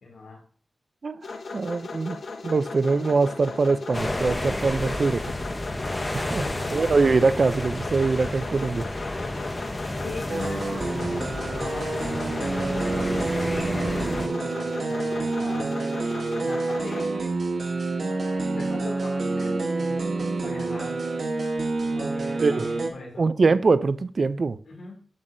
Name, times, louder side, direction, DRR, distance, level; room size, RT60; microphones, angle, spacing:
voice 1, 0.0-0.4 6.4-7.0 10.0-15.8 16.3-17.4 18.5-21.0 21.8-23.3 24.7-25.0, left 3 dB, 85° left, -3 dB, 2.1 m, -41 dB
sound 1, 1.2-17.1, left 4 dB, 70° left, 0.9 m, -37 dB
voice 2, 1.5-2.2 2.4-5.2 6.1-6.4 6.7-8.9 22.4-22.7 23.2-24.6, right 4 dB, 45° right, 15 dB, 0.4 m, -23 dB
sound 2, 3.9-14.3, left 1 dB, 20° left, 0.7 m, -31 dB
sound 3, 10.3-22.9, right 3 dB, 65° right, 1.2 m, -28 dB
7.9 x 7.3 x 2.6 m, 0.43 s
wide cardioid pair, 150°, 0 cm